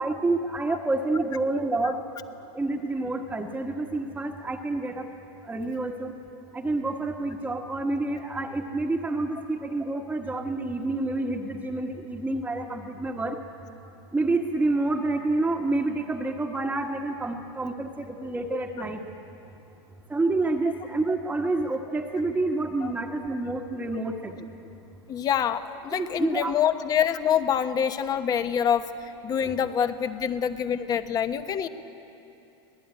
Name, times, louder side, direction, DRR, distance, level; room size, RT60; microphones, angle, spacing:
voice 1, 0.0-2.0 2.5-5.1 5.4-6.1 6.5-13.4 14.1-19.0 20.1-24.5 26.0-26.5, right 2 dB, 10° right, -3 dB, 1.5 m, -28 dB
voice 2, 25.1-31.7, left 8 dB, 25° left, 10 dB, 1.2 m, -26 dB
25.5 x 18.5 x 9.8 m, 2.9 s
supercardioid pair, 135°, 15 cm